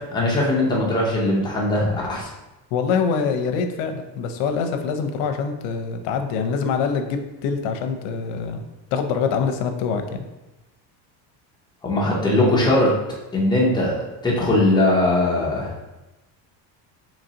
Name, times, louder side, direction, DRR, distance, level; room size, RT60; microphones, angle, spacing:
voice 1, 0.0-2.3 11.8-12.9 13.3-15.7, left 1 dB, 10° left, -4 dB, 0.5 m, -20 dB
voice 2, 2.7-8.6 8.9-10.2, left 5 dB, 75° left, 6 dB, 0.6 m, -24 dB
3.9 x 3.0 x 2.8 m, 1.0 s
cardioid pair, 165°, 46 cm